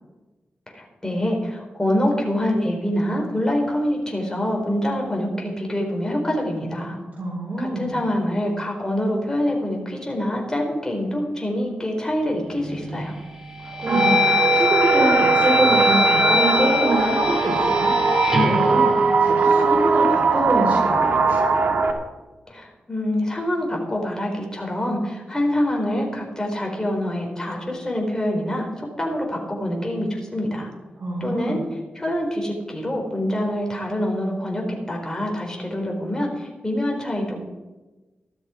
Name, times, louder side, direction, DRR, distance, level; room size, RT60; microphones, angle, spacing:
voice 1, 0.7-7.0 7.6-13.1 22.5-30.7 31.2-31.6 31.9-37.4, left 1 dB, 20° left, 0 dB, 4.2 m, -25 dB
voice 2, 7.1-7.9 13.6-17.9 18.4-21.5 31.0-31.6, right 1 dB, 45° right, -5 dB, 4.9 m, -25 dB
sound 1, 12.6-13.1 13.6-19.7, left 1 dB, 10° right, 3.0 m, -22 dB
sound 2, 13.9-21.9, right 4 dB, 65° right, 1.9 m, -20 dB
14.0 x 12.0 x 5.1 m, 1.1 s
cardioid pair, 65°, 3 cm